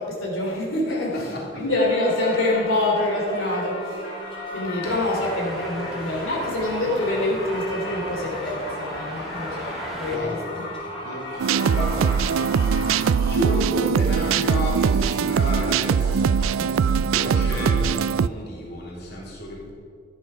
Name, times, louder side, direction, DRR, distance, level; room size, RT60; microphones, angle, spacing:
voice 1, 0.0-4.1 4.5-10.6 17.4-17.6, left 2 dB, 85° left, -2 dB, 3.0 m, -26 dB
voice 2, 0.9-1.6 3.7-3.8 10.0-10.7 11.0-12.1 13.3-16.8 17.1-19.7, equal, 50° left, -4 dB, 3.3 m, -32 dB
Singing / Church bell, 1.7-13.6, left 1 dB, 25° left, 3.6 m, -35 dB
sound 1, 4.8-10.2, right 1 dB, ahead, 2.3 m, -37 dB
sound 2, 11.4-18.3, right 6 dB, 85° right, 0.4 m, -21 dB
14.5 x 10.5 x 5.6 m, 2.3 s
head